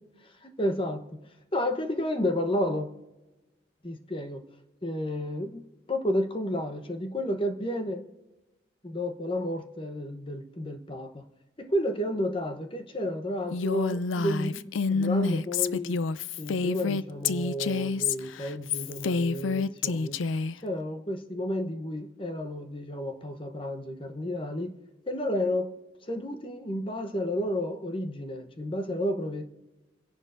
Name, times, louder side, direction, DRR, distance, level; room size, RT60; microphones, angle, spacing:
voice 1, 0.2-1.2 1.5-2.9 3.8-4.4 4.8-5.6 5.9-8.1 8.8-11.2 11.6-16.0 16.4-20.2 20.6-24.8 25.1-25.7 26.0-29.4, left 1 dB, 25° left, 7 dB, 1.0 m, -31 dB
Female speech woman speaking, 13.5-20.5, left 4 dB, 90° left, 0.4 m, -28 dB
28.0 x 11.0 x 2.6 m, 1.1 s
head